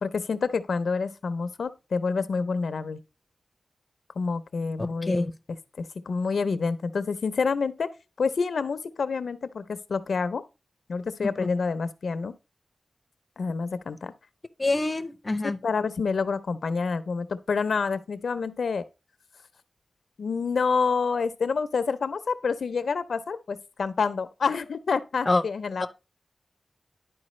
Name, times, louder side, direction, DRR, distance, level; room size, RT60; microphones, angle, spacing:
voice 1, 0.0-3.0 4.2-5.2 5.8-7.9 8.2-10.4 10.9-12.3 13.4-14.1 15.4-18.8 20.2-25.9, left 5 dB, 80° left, 0.5 m, -28 dB
voice 2, 5.0-5.3 14.6-15.6 25.3-25.4 25.8-25.9, left 2 dB, 25° left, 0.4 m, -25 dB
11.0 x 4.5 x 3.1 m
wide cardioid pair, 125°, 0 cm